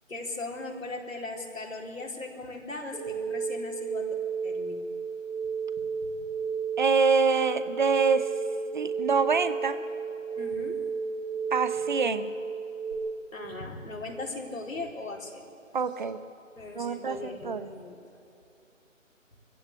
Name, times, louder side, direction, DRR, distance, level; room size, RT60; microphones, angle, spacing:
voice 1, 0.1-4.1 4.4-4.9 10.4-10.8 13.3-15.5 16.6-18.0, left 2 dB, 80° left, 0 dB, 4.2 m, -38 dB
sound 1, 2.9-12.9, right 5 dB, 75° right, 6.1 m, -32 dB
voice 2, 6.8-8.3 8.7-9.8 11.5-12.3 15.7-16.2 16.7-17.7, right 5 dB, 35° right, 12 dB, 1.0 m, -25 dB
24.5 x 15.5 x 8.5 m, 2.8 s
figure-of-eight pair, 155°, 39 cm